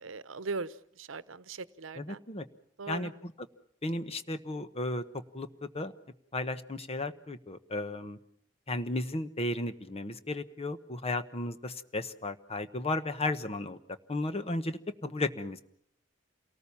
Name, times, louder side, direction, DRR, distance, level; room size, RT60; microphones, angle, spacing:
voice 1, 0.0-2.2 2.8-3.1, right 4 dB, 85° right, 16 dB, 0.9 m, -39 dB
voice 2, 1.9-2.4 2.9-3.5 3.8-5.0 5.3-5.9 6.3-8.2 8.7-13.8 14.1-15.6, left 2 dB, 30° left, 11 dB, 1.1 m, -34 dB
28.5 x 19.0 x 7.2 m, 0.67 s
head